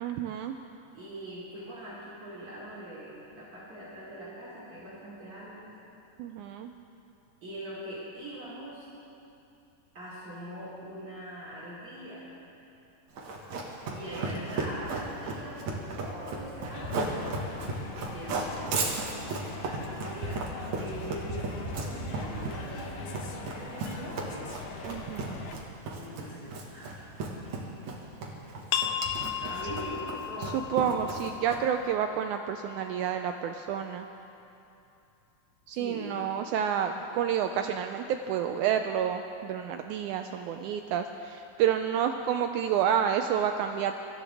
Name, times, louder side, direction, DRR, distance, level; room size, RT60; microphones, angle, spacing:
voice 1, 0.0-0.6 6.2-6.7 24.8-25.4 30.4-34.1 35.7-44.0, right 9 dB, 80° right, 6 dB, 1.8 m, -29 dB
voice 2, 0.9-5.8 7.4-8.9 9.9-12.3 13.9-17.3 18.1-20.4 20.7-24.5 25.9-27.1 27.5-28.0 28.3-28.7 29.4-30.5 35.7-36.2, equal, 40° right, -10 dB, 4.3 m, -42 dB
Run, 13.2-31.8, right 3 dB, 65° right, 2.8 m, -35 dB
sound 1, 16.7-25.6, left 4 dB, 60° left, 1.8 m, -42 dB
sound 2, 28.7-34.1, left 10 dB, 90° left, 2.4 m, -36 dB
25.5 x 14.0 x 3.5 m, 2.8 s
omnidirectional pair, 3.8 m